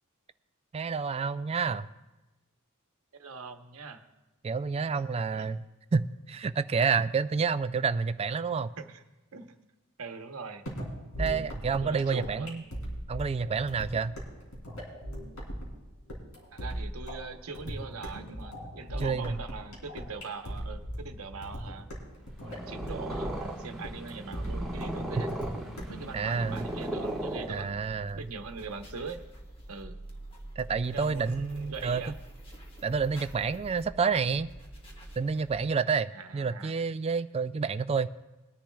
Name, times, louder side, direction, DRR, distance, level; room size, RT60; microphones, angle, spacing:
voice 1, 0.7-1.9 4.4-5.6 5.9-8.7 11.2-12.6 13.1-14.1 19.0-19.4 26.1-26.7 27.5-28.2 30.6-32.0 32.8-34.5 35.2-38.1, right 5 dB, 30° right, 13 dB, 0.3 m, -29 dB
voice 2, 3.1-4.0 4.9-5.0 5.3-5.6 8.8-9.0 9.3-9.5 10.0-10.7 11.8-12.6 16.5-21.9 22.4-25.4 25.9-27.8 28.1-29.2 29.7-30.0 30.9-32.1 36.1-36.7, right 4 dB, 75° right, 6 dB, 1.0 m, -42 dB
sound 1, 10.7-26.1, equal, 75° left, 3.2 m, -38 dB
Purr, 22.3-28.0, right 1 dB, ahead, 1.5 m, -36 dB
sound 2, 25.9-35.8, right 1 dB, 25° left, 1.4 m, -47 dB
21.5 x 10.5 x 2.3 m, 1.1 s
head